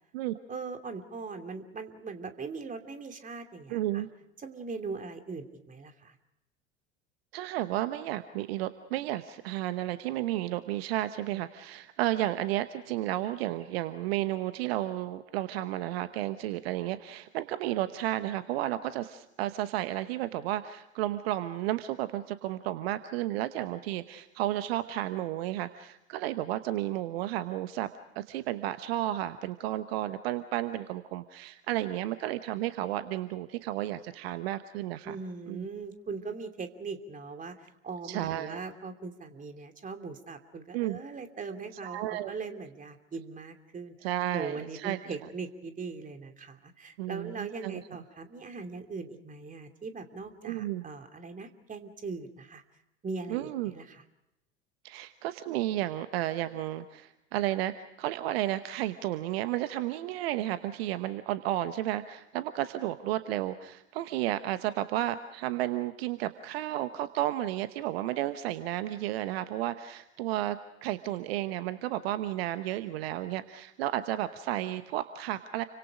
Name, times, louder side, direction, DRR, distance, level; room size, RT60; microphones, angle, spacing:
voice 1, 0.5-4.0 4.4-6.1 35.0-52.6 53.0-54.0, right 4 dB, 20° right, 6 dB, 2.9 m, -40 dB
voice 2, 3.7-4.1 7.3-27.9 28.1-35.2 35.5-35.7 38.0-38.6 40.7-41.0 41.8-42.3 44.0-45.1 47.0-47.8 50.4-50.9 53.3-53.7 54.8-75.6, right 14 dB, 60° right, 12 dB, 1.1 m, -32 dB
30.0 x 25.0 x 5.1 m, 0.90 s
figure-of-eight pair, 75°, 35 cm